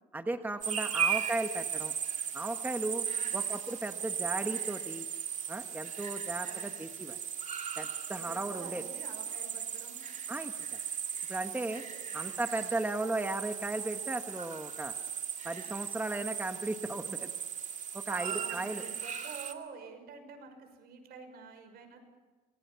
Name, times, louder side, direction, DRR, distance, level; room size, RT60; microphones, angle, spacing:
voice 1, 0.1-1.9 2.3-3.0 3.3-5.1 5.5-7.2 7.8-8.8 10.3-10.8 11.3-11.8 12.1-14.9 15.4-17.3 17.9-18.8, right 2 dB, 10° right, 6 dB, 1.4 m, -36 dB
sound 1, 0.6-19.5, right 7 dB, 45° right, 2.2 m, -37 dB
voice 2, 3.0-3.5 6.4-6.7 8.1-10.0 11.9-12.1 18.1-22.0, right 5 dB, 70° right, 6 dB, 6.0 m, -48 dB
27.0 x 21.0 x 7.0 m, 1.3 s
cardioid pair, 110°, 17 cm